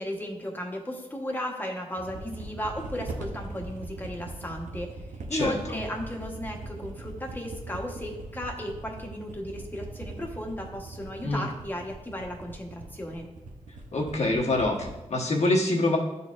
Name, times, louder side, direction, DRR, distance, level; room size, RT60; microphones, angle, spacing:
voice 1, 0.0-4.9 5.3-13.3, equal, 15° left, 1 dB, 1.1 m, -35 dB
sound 1, 2.0-15.0, right 2 dB, 90° right, 0.7 m, -41 dB
voice 2, 5.3-5.8 11.2-11.5 13.9-16.0, left 2 dB, 65° left, -1 dB, 1.2 m, -25 dB
11.0 x 4.1 x 2.5 m, 1.0 s
cardioid pair, 85°, 12 cm